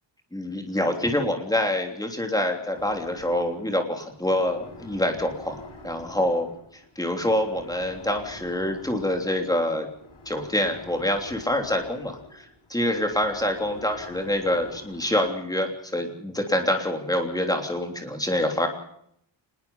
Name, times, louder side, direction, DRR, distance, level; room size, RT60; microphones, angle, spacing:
voice 1, 0.3-6.5 6.9-9.9 10.2-18.7, left 1 dB, 10° left, 3 dB, 3.2 m, -26 dB
sound 1, 2.7-15.3, left 2 dB, 80° left, 7.3 m, -47 dB
25.5 x 20.5 x 5.6 m, 0.72 s
wide cardioid pair, 180°, 47 cm